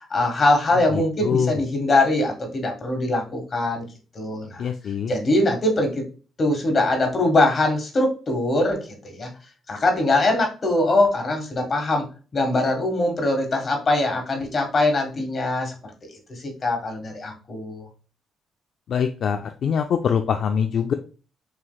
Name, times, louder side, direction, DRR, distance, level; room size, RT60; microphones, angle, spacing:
voice 1, 0.1-3.9 4.1-4.6 5.1-6.0 6.4-9.3 9.7-12.0 12.3-15.7 16.3-17.9, left 2 dB, 40° left, 3 dB, 1.6 m, -22 dB
voice 2, 0.9-1.6 4.6-5.1 18.9-20.9, left 7 dB, 60° left, 6 dB, 0.4 m, -24 dB
6.3 x 3.3 x 2.3 m, 0.36 s
cardioid pair, 90°, 0 cm